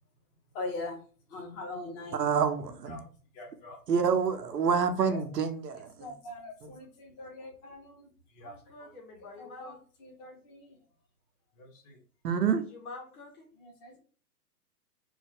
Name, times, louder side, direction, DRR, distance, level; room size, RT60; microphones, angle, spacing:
voice 1, 0.5-1.0 1.3-2.2 2.9-3.0 3.4-3.8 5.0-5.2 6.0-8.1 8.4-8.5 9.4-9.7 10.0-10.8 11.6-12.0 13.6-14.0, left 2 dB, 20° left, 0.7 m, -42 dB
voice 2, 2.1-3.0 3.9-6.1 6.6-6.7 12.2-12.6, right 6 dB, 85° right, 0.7 m, -27 dB
voice 3, 8.4-9.8 12.5-13.5, left 3 dB, 65° left, 1.6 m, -47 dB
3.1 x 2.3 x 3.4 m
hypercardioid pair, 130°, 48 cm